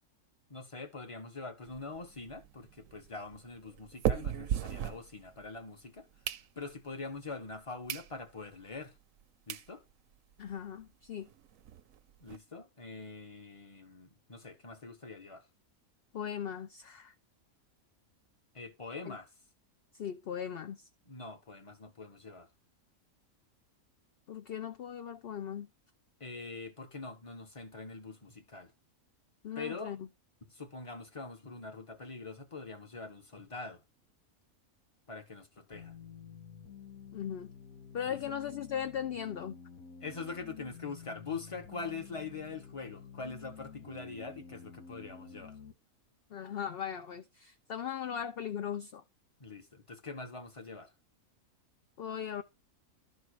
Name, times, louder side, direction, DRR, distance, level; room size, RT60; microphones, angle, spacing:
voice 1, 0.5-6.1 6.5-8.9 9.5-9.8 12.2-15.4 18.5-19.3 21.1-22.5 26.2-28.7 29.5-29.9 30.5-33.8 35.1-35.9 38.1-38.3 40.0-45.5 49.4-50.9, left 4 dB, 25° left, 1.3 m, -44 dB
sound 1, 1.7-5.6 6.0-6.9 7.4-7.5 7.9-8.1 8.5-8.6 9.2-9.3 9.5-9.7 10.1-10.2 10.4-10.5 10.8-10.9 11.2-12.4, right 10 dB, 70° right, 1.0 m, -37 dB
voice 2, 10.4-11.3 16.1-17.1 19.1-19.2 19.9-20.9 24.3-25.7 29.4-30.1 37.1-37.5 37.9-39.6 46.3-49.0 52.0-52.4, left 8 dB, 55° left, 0.7 m, -38 dB
sound 2, 35.7-45.7, left 6 dB, 85° left, 1.6 m, -50 dB
12.5 x 4.6 x 4.8 m
omnidirectional pair, 1.5 m